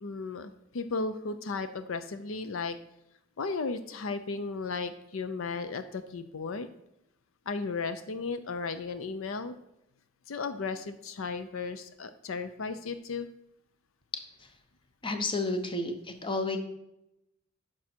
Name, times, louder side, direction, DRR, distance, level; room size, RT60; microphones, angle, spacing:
voice 1, 0.0-2.8 3.4-6.7 7.5-9.6 10.3-13.3, left 4 dB, 70° left, 11 dB, 0.5 m, -35 dB
voice 2, 15.0-15.9 16.2-16.6, left 2 dB, 25° left, 6 dB, 0.8 m, -30 dB
9.2 x 6.1 x 4.4 m, 0.86 s
head